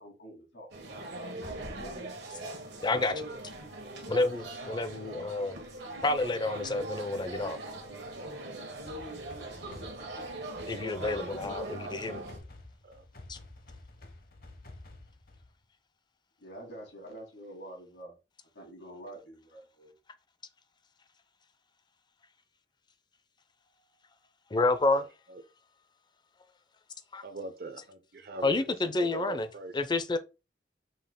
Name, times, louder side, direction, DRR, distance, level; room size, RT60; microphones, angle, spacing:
voice 1, 0.0-1.4 1.7-2.2 16.4-18.2 18.5-19.9, right 1 dB, 90° left, 2.7 m, -47 dB
sound 1, 0.7-12.4, right 2 dB, 75° right, 1.4 m, -41 dB
voice 2, 2.8-3.3 4.1-5.6 6.0-7.6 10.7-12.2 13.3-13.4 24.5-25.1 27.1-27.3 27.8-27.9 28.4-30.2, left 2 dB, 25° left, 0.5 m, -29 dB
sound 2, 8.8-15.6, left 2 dB, 55° left, 0.9 m, -51 dB
voice 3, 27.2-28.4 29.0-29.7, right 3 dB, 60° right, 0.7 m, -41 dB
5.5 x 2.3 x 3.6 m
head